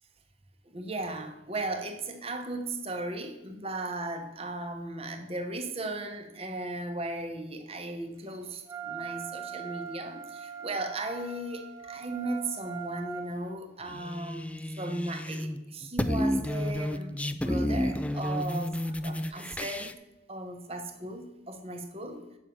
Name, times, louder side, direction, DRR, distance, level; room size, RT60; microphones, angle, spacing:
voice 1, 0.7-19.9 20.3-22.2, right 2 dB, 35° right, 6 dB, 1.1 m, -36 dB
Wind instrument woodwind instrument, 8.7-13.3, right 7 dB, 15° right, 0.7 m, -41 dB
sound 1, 13.9-15.6 15.8-19.9, left 1 dB, 5° left, 0.3 m, -31 dB
8.6 x 6.4 x 5.6 m, 0.96 s
head